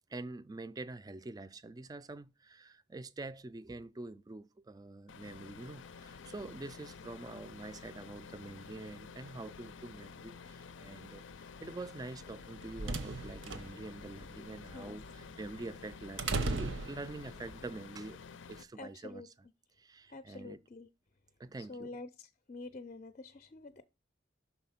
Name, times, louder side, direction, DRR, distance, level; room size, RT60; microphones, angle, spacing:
voice 1, 0.1-18.2 18.5-19.5 19.8-20.6 21.4-21.9, right 2 dB, 20° right, 0.4 m, -46 dB
sound 1, 5.1-18.6, left 5 dB, 85° left, 0.5 m, -51 dB
sound 2, 12.3-17.6, right 3 dB, 80° right, 0.8 m, -38 dB
voice 2, 18.8-19.3 20.1-20.9 21.7-23.8, left 3 dB, 40° left, 0.5 m, -47 dB
5.8 x 4.1 x 5.6 m
head